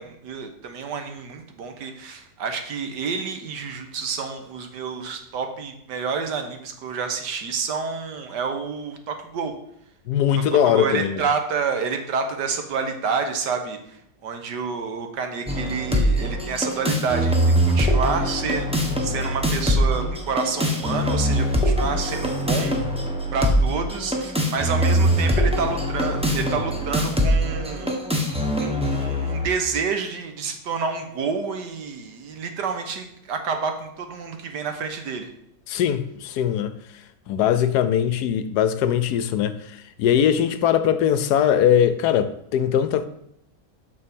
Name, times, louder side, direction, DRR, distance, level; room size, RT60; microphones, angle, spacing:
voice 1, 0.0-9.5 10.5-13.8 14.2-22.8 23.3-28.0 28.6-35.3, right 5 dB, 75° right, 1.6 m, -29 dB
voice 2, 10.1-11.2 35.7-36.8 37.3-43.1, left 9 dB, 75° left, 1.1 m, -21 dB
sound 1, 15.5-29.5, equal, 5° right, 0.8 m, -23 dB
6.9 x 6.2 x 5.3 m
omnidirectional pair, 1.8 m